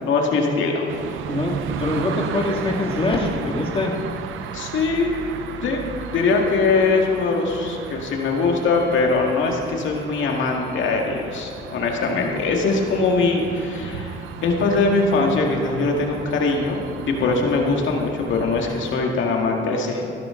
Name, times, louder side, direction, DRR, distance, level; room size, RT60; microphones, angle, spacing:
voice 1, 0.1-0.8 4.5-5.1 5.6-5.8 6.1-16.8 17.1-20.1, left 3 dB, 75° left, 1 dB, 2.1 m, -21 dB
sound 1, 0.9-19.0, right 8 dB, 90° right, 0.7 m, -35 dB
voice 2, 1.3-3.9 12.0-12.3 17.2-17.4, left 2 dB, 25° left, 0 dB, 2.1 m, -24 dB
15.5 x 12.5 x 3.8 m, 2.6 s
cardioid pair, 90°, 20 cm